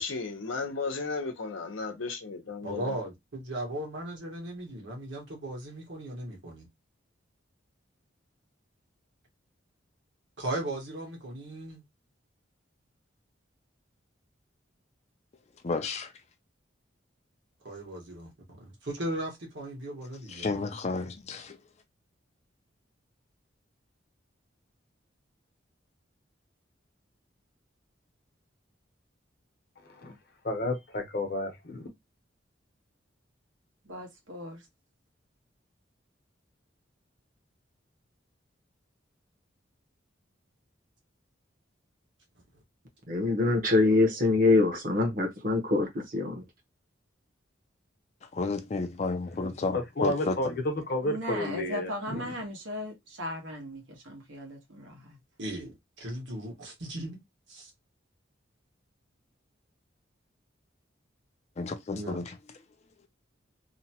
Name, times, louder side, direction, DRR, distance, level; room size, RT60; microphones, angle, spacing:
voice 1, 0.0-2.8, left 4 dB, 90° left, 0.7 m, -34 dB
voice 2, 2.6-6.7 10.4-11.8 17.6-20.6 55.4-57.2 57.5-57.7 61.9-62.2, right 1 dB, 65° right, 1.2 m, -37 dB
voice 3, 15.6-16.1 20.3-21.6 48.3-50.6 61.6-62.3, left 3 dB, 35° left, 0.4 m, -32 dB
voice 4, 30.4-31.9 49.7-52.3, left 1 dB, 55° left, 0.8 m, -31 dB
voice 5, 33.8-34.6 51.0-55.2, equal, 85° right, 1.2 m, -38 dB
voice 6, 43.1-46.4, left 3 dB, 45° right, 0.9 m, -24 dB
2.8 x 2.2 x 2.8 m
head